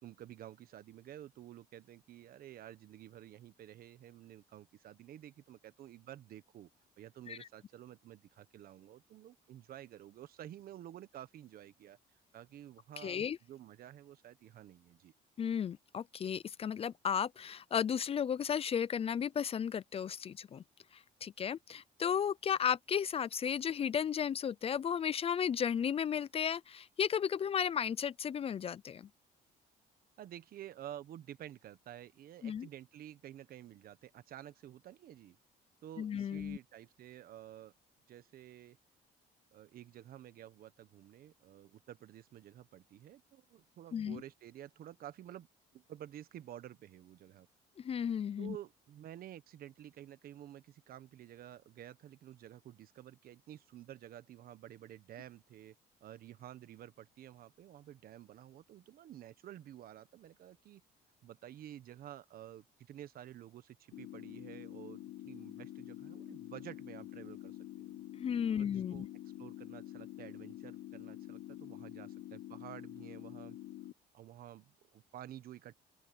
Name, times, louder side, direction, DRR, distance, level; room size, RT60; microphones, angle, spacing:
voice 1, 0.0-6.7 7.0-12.0 12.3-15.1 30.2-35.4 35.8-37.7 38.1-38.8 39.5-45.5 45.7-47.5 48.4-55.7 56.0-60.8 61.2-68.0 68.5-69.1 69.4-73.6 74.1-75.8, right 12 dB, 60° right, 1.3 m, -51 dB
voice 2, 13.0-13.4 15.4-20.6 20.9-29.1 32.4-32.7 36.0-36.6 43.9-44.2 47.8-48.6 68.1-69.1, left 8 dB, 35° left, 0.5 m, -34 dB
sound 1, 63.9-73.9, left 13 dB, 70° left, 1.3 m, -48 dB
open air
cardioid pair, 110°, 17 cm